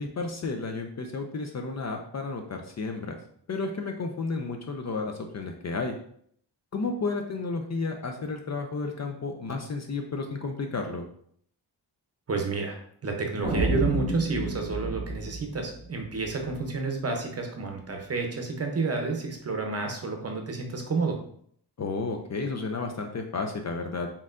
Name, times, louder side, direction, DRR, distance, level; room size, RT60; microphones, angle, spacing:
voice 1, 0.0-3.2 3.5-5.9 6.7-11.0 21.8-24.1, left 3 dB, 40° left, 3 dB, 0.4 m, -32 dB
voice 2, 12.3-12.8 13.0-21.2, right 3 dB, 35° right, 3 dB, 0.7 m, -30 dB
sound 1, 13.4-16.5, right 2 dB, 15° right, 1.0 m, -30 dB
4.3 x 3.6 x 2.5 m, 0.63 s
wide cardioid pair, 150°, 43 cm